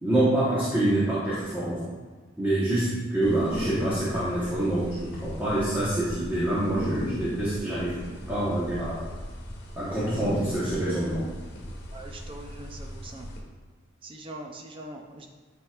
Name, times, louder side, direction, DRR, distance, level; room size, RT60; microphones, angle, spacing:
voice 1, 0.0-1.8 2.4-8.0 8.3-9.0 9.7-11.2, right 1 dB, 10° right, -10 dB, 1.2 m, -26 dB
sound 1, 3.2-13.4, equal, 55° left, 1.2 m, -37 dB
voice 2, 11.9-13.3 14.0-15.3, right 1 dB, 25° right, 3 dB, 0.5 m, -42 dB
9.7 x 4.4 x 2.4 m, 1.4 s
head